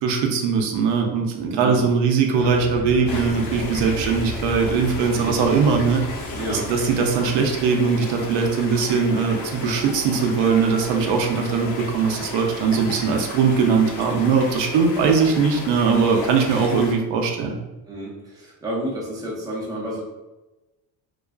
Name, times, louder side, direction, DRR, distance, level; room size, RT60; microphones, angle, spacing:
voice 1, 0.0-6.0 6.5-17.6, right 5 dB, 90° right, 2 dB, 0.6 m, -20 dB
sound 1, 2.4-7.7, left 2 dB, 40° left, 0.6 m, -35 dB
sound 2, 3.1-16.9, left 3 dB, 85° left, 0.7 m, -34 dB
voice 2, 6.4-6.7 15.8-16.2 17.9-20.0, right 1 dB, 10° right, -4 dB, 0.3 m, -30 dB
2.4 x 2.3 x 2.2 m, 1.0 s
cardioid pair, 165°, 41 cm